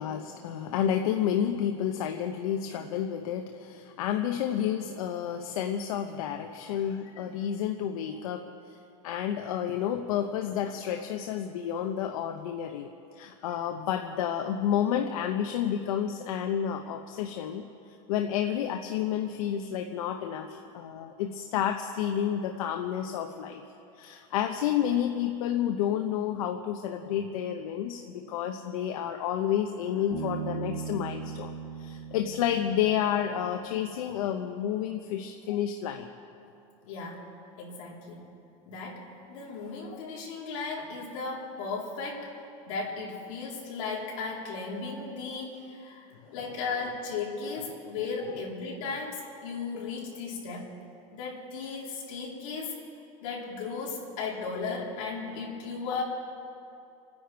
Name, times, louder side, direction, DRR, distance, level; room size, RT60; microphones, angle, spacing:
voice 1, 0.0-8.5 9.0-12.9 13.2-17.6 18.1-23.6 24.0-36.1 39.9-40.0 56.0-56.1, left 9 dB, 85° left, 5 dB, 0.9 m, -30 dB
Bass guitar, 30.1-33.6, right 5 dB, 15° right, 3.4 m, -38 dB
voice 2, 36.9-37.2 37.6-38.3 38.7-42.3 42.7-50.7 51.1-52.7 53.2-56.0, left 4 dB, 70° left, -5 dB, 4.1 m, -36 dB
29.5 x 10.0 x 4.6 m, 2.7 s
supercardioid pair, 170°, 18 cm